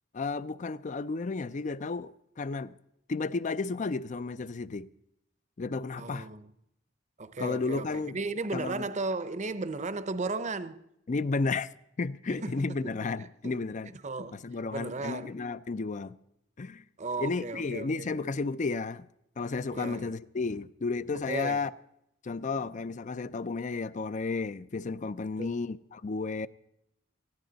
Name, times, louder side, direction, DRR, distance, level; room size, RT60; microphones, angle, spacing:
voice 1, 0.1-2.7 3.1-4.9 5.6-6.3 7.4-8.2 8.5-8.9 11.1-11.7 12.0-13.9 14.3-16.2 16.6-16.8 17.2-19.1 19.4-21.7 22.2-26.5, left 3 dB, 40° left, 0.5 m, -32 dB
voice 2, 6.0-6.5 7.2-10.8 12.3-12.7 13.4-13.6 14.0-14.4 14.7-15.3 17.0-18.1 19.7-20.1 21.3-21.6 25.4-25.6, right 3 dB, 40° right, 0.7 m, -35 dB
19.5 x 14.0 x 4.0 m
head